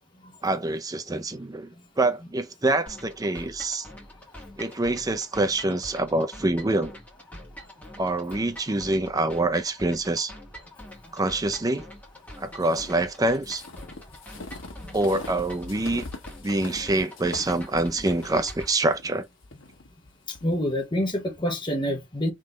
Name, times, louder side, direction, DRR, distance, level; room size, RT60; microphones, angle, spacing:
voice 1, 0.4-1.7 2.0-3.9 4.6-7.0 8.0-10.3 11.1-11.9 12.4-13.6 14.9-16.1 16.4-19.3, right 2 dB, 20° right, 0.5 m, -26 dB
sound 1, 2.9-18.7, equal, 10° left, 1.6 m, -45 dB
sound 2, 12.6-20.5, left 2 dB, 80° left, 1.3 m, -42 dB
voice 2, 20.3-22.3, equal, 25° left, 1.1 m, -27 dB
3.8 x 3.2 x 3.7 m
head